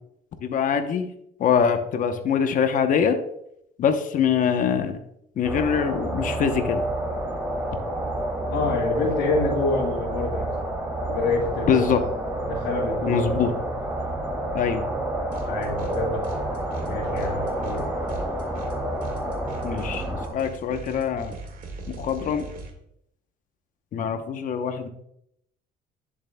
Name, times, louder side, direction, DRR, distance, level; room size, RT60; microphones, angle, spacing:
voice 1, 0.4-1.1 1.4-3.2 3.8-4.9 5.4-6.8 11.7-12.0 13.1-13.5 14.5-14.8 19.6-20.0 20.3-21.4 21.9-22.5 23.9-24.9, left 7 dB, 50° left, 7 dB, 0.8 m, -23 dB
sound 1, 5.4-20.3, right 1 dB, 15° right, 2.3 m, -29 dB
voice 2, 8.5-10.6 11.1-11.9 12.4-13.1 15.4-16.6 16.8-17.9 23.9-24.1, left 3 dB, 90° left, -5 dB, 2.4 m, -27 dB
sound 2, 15.3-16.0 16.2-22.7, right 3 dB, 55° right, 1.9 m, -41 dB
10.5 x 7.1 x 2.2 m, 0.75 s
cardioid pair, 110°, 17 cm